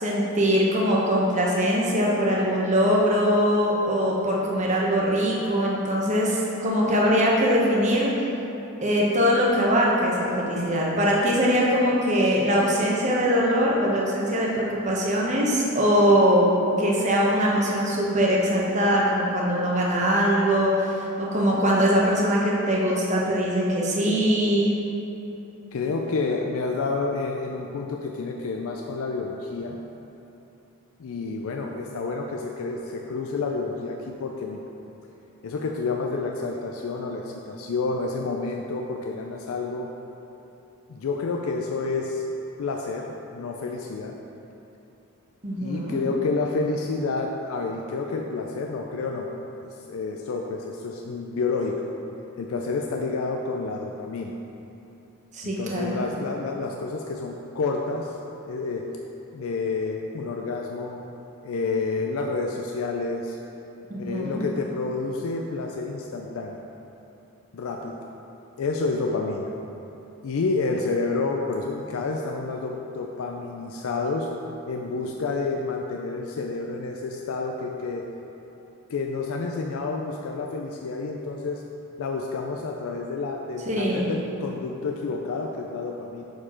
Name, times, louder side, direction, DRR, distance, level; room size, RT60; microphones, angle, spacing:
voice 1, 0.0-8.1 8.8-16.5 16.8-24.7 45.4-46.0 55.3-56.0 63.9-64.4 83.7-84.1, equal, 30° right, -4 dB, 0.9 m, -22 dB
voice 2, 25.7-29.8 31.0-34.6 35.4-39.9 40.9-42.2 42.6-44.2 45.6-49.3 49.6-51.8 52.4-54.3 55.4-58.2 58.5-58.9 59.3-61.0 61.4-63.4 64.0-66.6 67.5-68.0 68.6-69.5 70.2-74.3 74.7-78.1 78.9-81.6 82.0-86.2, left 3 dB, 70° left, 2 dB, 0.4 m, -29 dB
6.5 x 4.7 x 4.3 m, 3.0 s
head